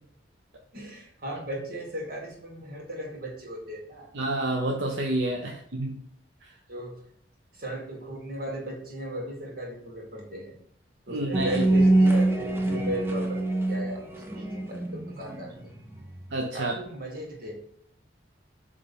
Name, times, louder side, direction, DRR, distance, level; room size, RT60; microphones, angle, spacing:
voice 1, 0.7-4.1 5.4-5.6 6.7-7.0 7.5-10.6 11.0-15.5 16.5-17.6, right 1 dB, 50° right, -1 dB, 1.7 m, -36 dB
voice 2, 4.1-6.0 11.1-11.6 16.3-16.7, right 1 dB, 75° right, 1 dB, 0.7 m, -29 dB
sound 1, 11.3-16.2, right 2 dB, 10° right, 0.7 m, -24 dB
7.8 x 3.3 x 3.7 m, 0.68 s
head